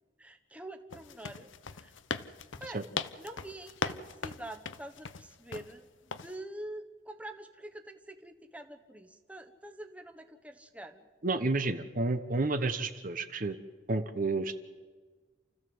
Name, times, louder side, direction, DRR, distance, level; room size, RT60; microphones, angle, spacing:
voice 1, 0.2-1.5 1.8-1.9 2.6-2.8 3.2-11.1, right 1 dB, 5° right, 5 dB, 1.2 m, -46 dB
sound 1, 0.9-5.7 6.1-6.3, left 5 dB, 85° left, 0.9 m, -39 dB
voice 2, 11.2-13.6 13.9-14.6, right 3 dB, 45° right, 9 dB, 1.1 m, -30 dB
29.0 x 15.0 x 7.9 m, 1.4 s
head